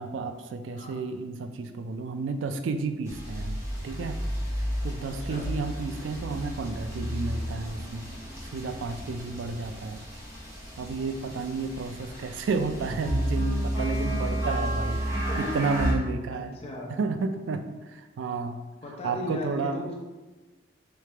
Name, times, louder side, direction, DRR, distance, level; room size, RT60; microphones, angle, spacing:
voice 1, 0.0-4.2 4.8-8.1 8.5-10.1 10.8-15.0 15.4-16.6 16.9-18.6 19.0-19.8, right 4 dB, 85° right, 8 dB, 0.3 m, -31 dB
sound 1, 3.1-15.9, equal, 15° right, 0.8 m, -32 dB
voice 2, 5.0-5.4 15.3-15.5 16.3-16.9 18.8-20.0, left 1 dB, 30° left, -2 dB, 0.8 m, -37 dB
3.8 x 3.3 x 3.3 m, 1.2 s
head